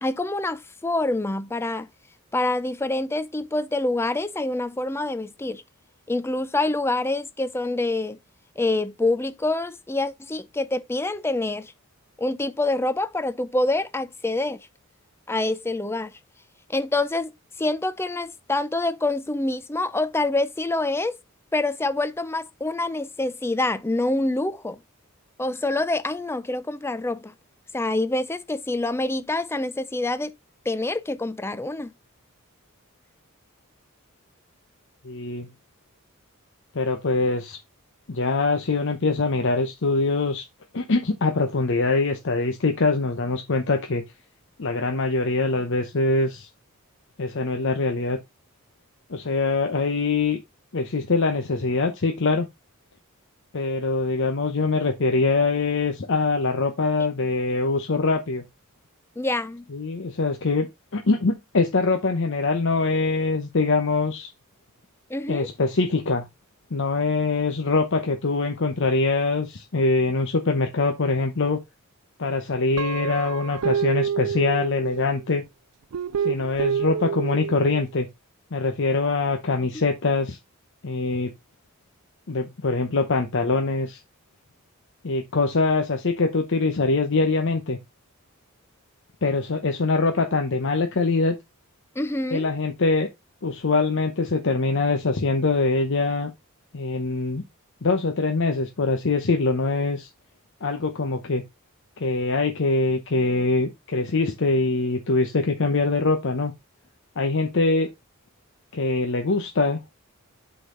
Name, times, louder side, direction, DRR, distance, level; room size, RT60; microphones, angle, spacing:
voice 1, 0.0-1.9 2.3-5.6 6.1-8.2 8.6-11.7 12.2-14.7 15.3-16.1 16.7-17.3 17.6-21.2 21.5-24.8 25.4-27.3 27.7-30.3 30.7-31.9 59.2-59.7 65.1-65.5 92.0-92.5, left 2 dB, 10° left, 0.4 m, -26 dB
voice 2, 35.0-35.5 36.7-37.6 38.1-40.5 40.7-44.0 44.6-46.5 47.2-48.2 49.1-50.4 50.7-52.5 53.5-58.4 59.7-60.7 60.9-64.3 65.3-66.3 66.7-71.6 72.2-75.4 76.2-78.1 78.5-80.4 80.8-81.3 82.3-84.0 85.0-87.8 89.2-91.3 92.3-93.1 93.4-96.3 96.7-97.4 97.8-100.1 100.6-101.4 102.0-106.5 107.2-107.9 108.7-110.0, left 3 dB, 60° left, 0.8 m, -23 dB
Guitar, 72.8-75.2 75.9-77.9, right 8 dB, 85° right, 0.4 m, -28 dB
8.2 x 4.0 x 3.7 m
head